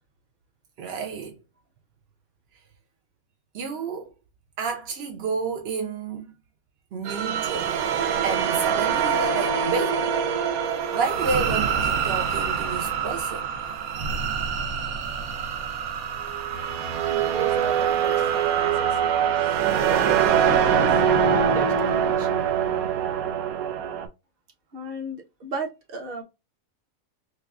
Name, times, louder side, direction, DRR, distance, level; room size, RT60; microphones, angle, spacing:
voice 1, 0.8-1.4 2.5-2.6 3.5-4.1 4.6-6.3 6.9-7.8 8.2-10.3 10.6-13.5, right 5 dB, 65° right, 0.6 m, -30 dB
sound 1, 7.1-24.1, right 7 dB, 85° right, 1.1 m, -24 dB
voice 2, 17.1-21.0 21.4-22.5 24.7-26.2, right 2 dB, 45° right, 1.0 m, -36 dB
4.7 x 2.3 x 2.3 m
omnidirectional pair, 1.5 m